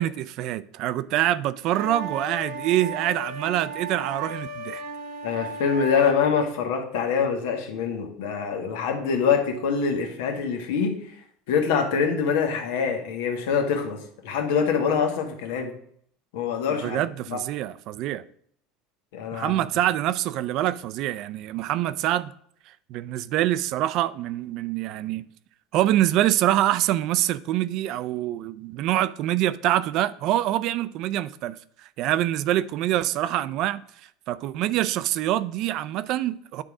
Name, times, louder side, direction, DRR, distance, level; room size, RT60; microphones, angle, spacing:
voice 1, 0.0-4.8 16.7-18.2 19.3-22.3 22.7-25.2 25.7-36.6, right 13 dB, 50° right, 0.4 m, -25 dB
sound 1, 1.7-6.2, right 3 dB, 90° right, 1.3 m, -35 dB
voice 2, 5.2-11.1 11.5-15.7 16.3-17.0 17.3-17.4 19.1-19.6, left 6 dB, 85° left, 1.4 m, -25 dB
9.8 x 3.8 x 4.9 m
cardioid pair, 145°, 0 cm